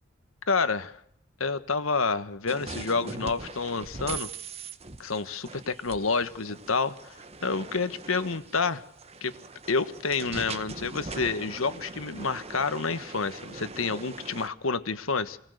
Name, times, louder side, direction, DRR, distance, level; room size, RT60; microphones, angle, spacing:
voice 1, 0.5-1.0 1.4-4.3 5.0-7.2 7.4-8.8 9.2-9.3 9.7-15.4, left 4 dB, 85° left, 11 dB, 1.5 m, -29 dB
sound 1, 2.5-14.5, right 3 dB, 30° right, 1.1 m, -41 dB
28.0 x 19.5 x 6.7 m, 0.71 s
head